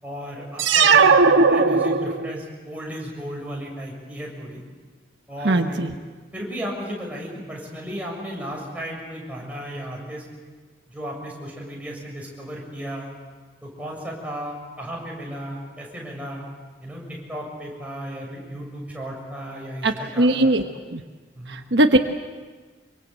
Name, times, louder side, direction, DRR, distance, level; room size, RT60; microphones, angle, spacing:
voice 1, 0.0-4.6 5.3-5.8 6.3-10.2 10.9-13.1 13.6-16.4 16.8-20.6 21.3-21.6, equal, 10° right, -2 dB, 6.8 m, -34 dB
sound 1, 0.6-2.4, right 4 dB, 85° right, 1.3 m, -17 dB
voice 2, 5.4-5.9 19.8-20.6 20.9-21.0 21.5-22.0, right 1 dB, 65° right, 5 dB, 1.3 m, -19 dB
25.5 x 24.0 x 8.2 m, 1.4 s
head